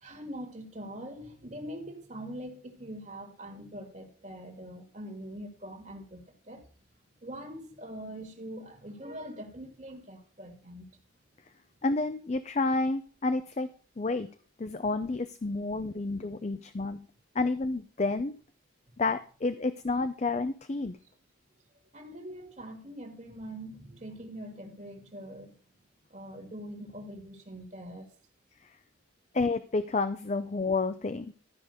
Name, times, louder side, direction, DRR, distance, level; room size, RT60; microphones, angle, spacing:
voice 1, 0.0-6.7 7.2-10.9 21.9-25.5 26.1-28.1, equal, 35° right, 1.9 m, -43 dB
voice 2, 11.8-13.7 14.0-17.1 17.3-18.3 19.0-21.0 28.6-28.7 29.3-31.3, left 3 dB, 35° left, 0.5 m, -30 dB
12.5 x 5.3 x 6.4 m
head